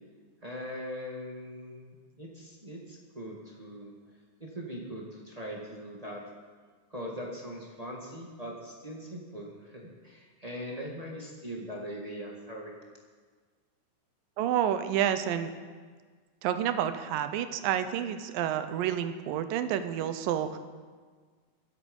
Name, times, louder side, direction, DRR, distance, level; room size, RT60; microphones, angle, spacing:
voice 1, 0.4-3.9 4.4-6.2 6.9-12.8, equal, 25° right, -2 dB, 0.8 m, -41 dB
voice 2, 14.4-15.5 16.4-20.6, right 10 dB, 90° right, 10 dB, 2.5 m, -29 dB
23.5 x 8.6 x 5.3 m, 1.5 s
omnidirectional pair, 3.9 m